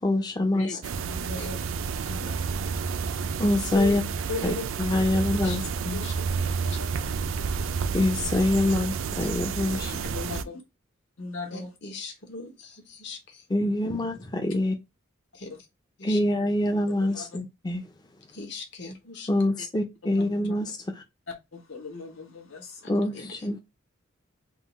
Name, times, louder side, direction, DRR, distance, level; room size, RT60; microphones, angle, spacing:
voice 1, 0.0-0.7 3.4-4.0 4.4-6.0 7.9-9.9 13.5-14.8 16.0-17.8 19.3-20.8 22.9-23.6, left 1 dB, 20° left, 0.4 m, -25 dB
voice 2, 0.5-1.6 2.0-3.1 3.7-4.0 4.3-4.7 5.0-5.1 5.4-5.5 5.9-6.3 6.6-6.9 7.8-7.9 9.6-10.6 11.2-11.7 13.9-14.2 15.5-15.6 17.0-17.4 19.6-19.7 20.2-20.3 21.3-23.0, left 3 dB, 90° left, 1.3 m, -38 dB
sound 1, 0.8-10.4, right 5 dB, 75° right, 0.4 m, -30 dB
voice 3, 11.5-13.4 15.3-15.5 16.0-16.2 18.3-19.3 23.0-23.6, left 4 dB, 55° left, 0.9 m, -41 dB
3.7 x 2.3 x 4.0 m
head